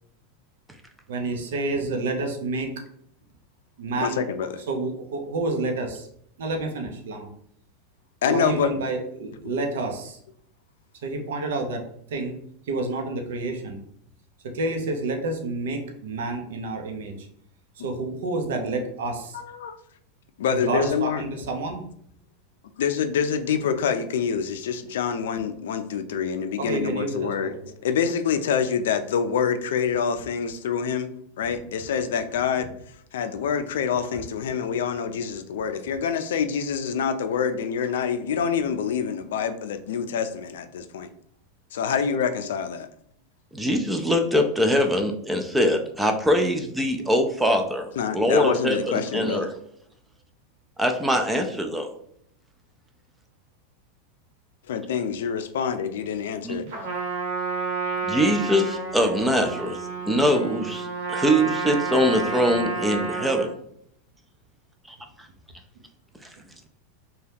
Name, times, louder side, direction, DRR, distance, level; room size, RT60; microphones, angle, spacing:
voice 1, 1.1-2.7 3.8-4.2 4.7-6.1 6.4-7.3 8.3-10.2 11.0-11.8 12.1-12.4 12.7-13.8 14.5-17.1 17.8-19.4 20.5-21.8 26.6-27.5, right 2 dB, 80° right, 3 dB, 0.6 m, -29 dB
voice 2, 4.0-4.6 8.2-8.7 17.8-17.9 19.3-19.7 20.4-21.2 22.8-27.5 27.8-32.7 33.1-41.1 41.7-42.9 48.0-49.5 54.7-56.7, left 7 dB, 85° left, 9 dB, 0.3 m, -26 dB
voice 3, 43.5-49.5 50.8-51.9 56.4-56.6 58.0-59.8 60.1-63.5 64.9-65.0, equal, 5° right, 4 dB, 0.3 m, -23 dB
Trumpet, 56.7-63.5, right 4 dB, 65° right, 1.0 m, -30 dB
2.8 x 2.2 x 3.4 m, 0.68 s
supercardioid pair, 160°, 0 cm